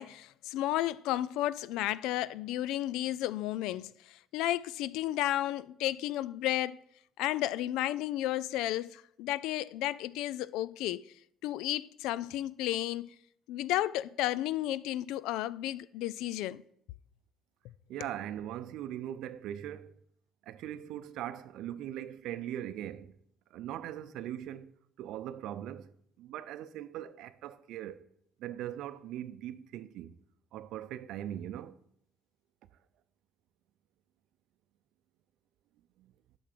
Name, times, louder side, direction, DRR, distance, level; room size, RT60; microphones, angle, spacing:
voice 1, 0.0-6.8 7.2-11.0 11.4-13.1 13.5-16.6, left 14 dB, 90° left, 0.3 m, -33 dB
voice 2, 17.9-19.9 20.5-23.1 23.5-24.7 25.0-25.9 26.2-28.0 28.4-30.1 30.5-31.8 36.0-36.1, right 11 dB, 75° right, 0.6 m, -40 dB
8.7 x 6.0 x 6.6 m
cardioid pair, 120°, 0 cm